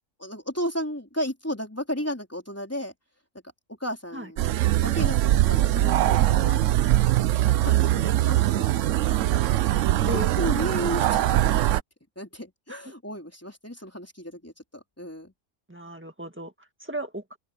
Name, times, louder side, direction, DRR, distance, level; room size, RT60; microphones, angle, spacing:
voice 1, 0.2-2.9 3.8-6.8 7.4-9.2 10.0-11.8 12.2-14.5 15.0-15.3, equal, 10° left, 4.0 m, -34 dB
sound 1, 4.4-11.8, right 14 dB, 75° right, 0.9 m, -22 dB
voice 2, 15.7-17.4, right 1 dB, 10° right, 1.8 m, -35 dB
open air
omnidirectional pair, 1.3 m